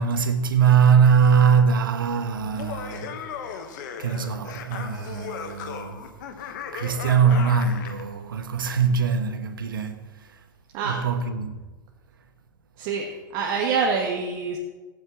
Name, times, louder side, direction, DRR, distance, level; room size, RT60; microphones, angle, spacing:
voice 1, 0.0-3.3 4.0-6.1 6.7-10.1 10.8-11.5, right 6 dB, 75° right, 1.2 m, -22 dB
Laughter, 2.4-8.0, left 7 dB, 60° left, 1.4 m, -36 dB
voice 2, 12.8-14.6, right 5 dB, 45° right, 1.5 m, -26 dB
19.5 x 9.0 x 3.1 m
figure-of-eight pair, 95°, 11 cm